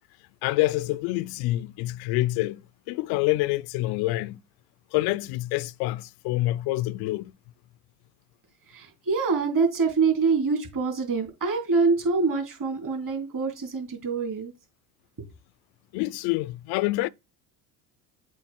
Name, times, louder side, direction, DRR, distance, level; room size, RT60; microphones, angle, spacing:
voice 1, 0.4-2.6 2.9-4.4 4.9-7.3 15.9-17.1, left 18 dB, 50° left, 0.6 m, -26 dB
voice 2, 8.7-14.5, right 4 dB, 40° right, 3.3 m, -25 dB
7.6 x 2.6 x 5.6 m
hypercardioid pair, 65°, 49 cm